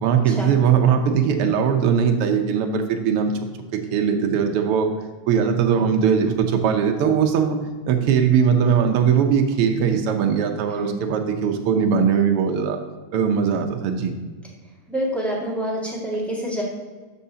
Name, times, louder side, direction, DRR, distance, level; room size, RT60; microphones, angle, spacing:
voice 1, 0.0-3.3 3.7-4.9 5.3-7.6 7.9-12.8 13.1-14.1, right 7 dB, 75° right, 5 dB, 1.3 m, -20 dB
voice 2, 10.7-11.0 14.9-16.6, equal, ahead, -5 dB, 1.3 m, -27 dB
12.5 x 6.4 x 2.8 m, 1.4 s
omnidirectional pair, 3.3 m